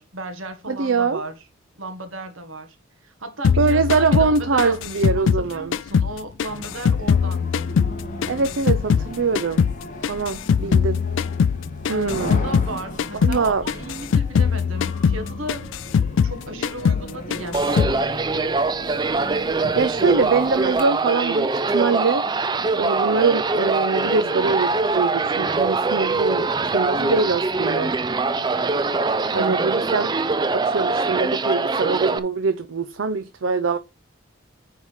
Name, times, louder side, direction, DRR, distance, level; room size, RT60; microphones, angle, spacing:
voice 1, 0.0-1.4 1.8-2.8 3.0-7.7 11.9-15.7 16.2-18.5 29.3-29.7, right 1 dB, 90° right, 1.7 m, -35 dB
voice 2, 0.7-1.2 3.6-5.7 8.3-9.6 10.1-11.0 11.9-12.4 13.2-13.6 19.8-22.2 22.8-26.5 26.7-27.9 29.3-30.1 30.5-33.8, right 4 dB, 75° right, 0.6 m, -23 dB
sound 1, 3.4-6.1 6.4-9.1 9.4-12.7 13.0-13.4 13.7-16.4 16.6-17.1 17.3-18.0, left 6 dB, 70° left, 0.3 m, -21 dB
sound 2, 6.5-20.8, equal, 40° left, 1.7 m, -36 dB
sound 3, 17.5-32.2, right 3 dB, 20° right, 0.4 m, -23 dB
9.5 x 3.7 x 4.8 m
head